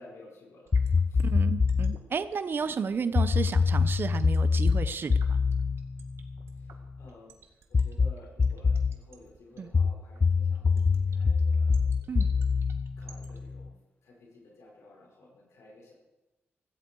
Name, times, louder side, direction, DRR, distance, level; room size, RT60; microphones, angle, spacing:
voice 1, 0.0-1.3 6.5-12.5 13.0-13.8 14.0-15.9, left 2 dB, 85° left, -1 dB, 5.2 m, -54 dB
sound 1, 0.7-2.0 3.2-6.9 7.7-9.0 9.7-13.7, left 5 dB, 35° left, 0.4 m, -25 dB
sound 2, 0.7-13.4, right 6 dB, 75° right, 1.9 m, -55 dB
voice 2, 1.2-5.4 9.6-9.7 12.1-12.3, right 5 dB, 50° right, 13 dB, 0.8 m, -32 dB
16.5 x 15.5 x 4.7 m, 1.1 s
cardioid pair, 95°, 5 cm